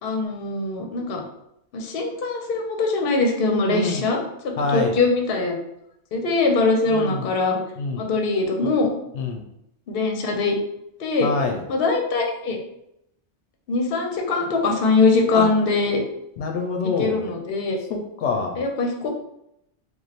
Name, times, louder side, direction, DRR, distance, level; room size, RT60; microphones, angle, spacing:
voice 1, 0.0-1.2 1.7-4.2 4.4-5.5 6.1-7.6 7.9-8.9 9.9-10.6 11.0-11.3 11.7-12.6 13.7-16.0 17.0-17.8 18.6-19.1, left 3 dB, 60° left, 2 dB, 0.8 m, -22 dB
voice 2, 3.7-4.0 4.6-5.0 6.9-7.3 7.8-8.0 9.1-9.4 11.2-11.6 15.3-15.5 16.4-17.2 17.9-18.6, left 4 dB, 85° left, 3 dB, 0.9 m, -25 dB
3.1 x 2.3 x 4.0 m, 0.79 s
omnidirectional pair, 1.2 m